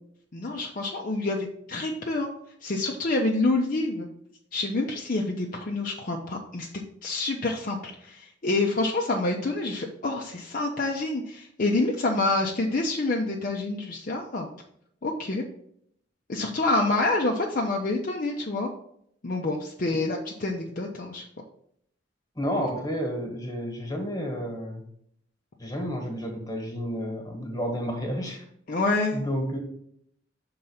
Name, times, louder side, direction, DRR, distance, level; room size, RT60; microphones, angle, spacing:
voice 1, 0.3-2.3 2.6-4.1 4.5-6.7 7.0-14.5 15.0-15.4 16.3-18.7 19.2-21.2 28.7-29.3, left 2 dB, 45° left, 0 dB, 0.6 m, -27 dB
voice 2, 22.3-24.8 25.6-28.4 29.1-29.6, equal, 20° left, 2 dB, 1.5 m, -31 dB
5.7 x 3.8 x 5.5 m, 0.69 s
head